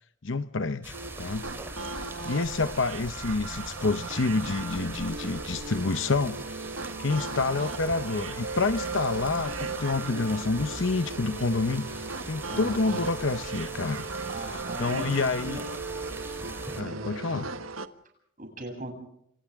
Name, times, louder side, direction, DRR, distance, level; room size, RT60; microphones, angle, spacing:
voice 1, 0.2-6.6 7.0-14.0 14.8-15.6 16.8-17.5, left 3 dB, 60° left, 11 dB, 0.8 m, -28 dB
sound 1, 0.8-16.8, right 1 dB, 10° right, 3.4 m, -42 dB
sound 2, 0.9-17.9, right 3 dB, 70° right, 1.4 m, -37 dB
voice 2, 12.5-13.1 14.3-15.6 16.9-17.5 18.4-18.9, right 1 dB, 40° right, 4 dB, 8.0 m, -39 dB
29.5 x 27.0 x 3.6 m, 0.71 s
head